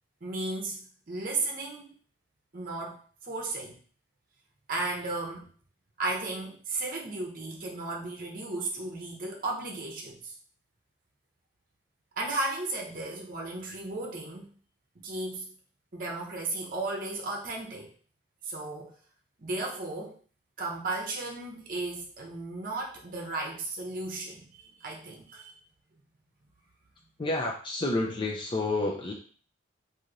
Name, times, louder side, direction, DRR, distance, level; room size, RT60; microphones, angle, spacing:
voice 1, 0.2-1.9 2.5-3.8 4.7-5.5 6.0-10.3 12.2-14.5 15.0-15.5 15.9-17.9 18.4-18.9 19.4-20.2 20.6-25.5, right 2 dB, 45° right, 0 dB, 0.8 m, -35 dB
voice 2, 27.2-29.1, left 2 dB, 25° left, -1 dB, 0.4 m, -29 dB
3.0 x 2.7 x 3.8 m, 0.41 s
head